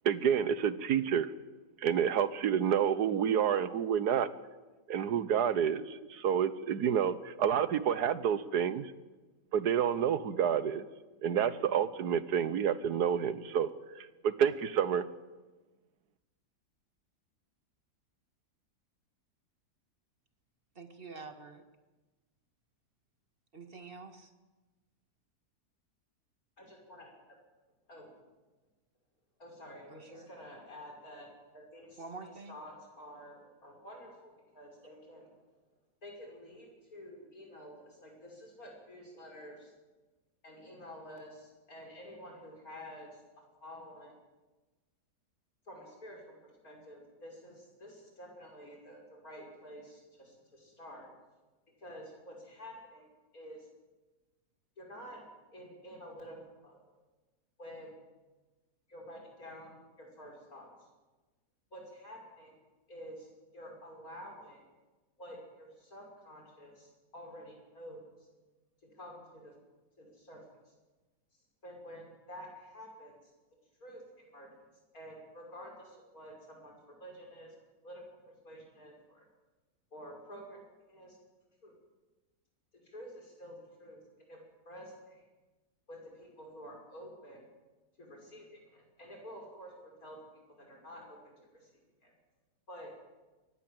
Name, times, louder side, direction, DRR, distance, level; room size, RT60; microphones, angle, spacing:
voice 1, 0.0-1.3 1.8-4.3 4.9-8.9 9.5-10.9 11.2-13.7 13.9-15.1, right 8 dB, 75° right, 15 dB, 1.5 m, -29 dB
voice 2, 20.8-21.6 23.5-24.3 29.9-30.3 32.0-32.6, right 4 dB, 35° right, 7 dB, 2.0 m, -47 dB
voice 3, 26.6-27.1 27.9-28.1 29.4-35.4 36.0-39.7 40.4-43.2 43.6-44.1 45.7-51.1 51.8-53.1 53.3-53.7 54.8-55.2 55.5-56.9 57.6-57.9 58.9-60.9 61.7-62.5 62.9-63.3 63.5-64.6 65.2-68.1 68.8-69.5 70.0-70.7 71.6-73.1 73.8-74.5 74.9-77.5 77.8-79.2 79.9-80.6 80.9-81.2 81.6-81.7 82.8-84.0 84.3-84.4 84.6-85.2 85.9-87.4 88.0-90.2 90.6-91.7 92.0-92.1 92.7-92.9, equal, 60° left, 0 dB, 6.6 m, -50 dB
24.0 x 19.0 x 7.8 m, 1.2 s
omnidirectional pair, 1.8 m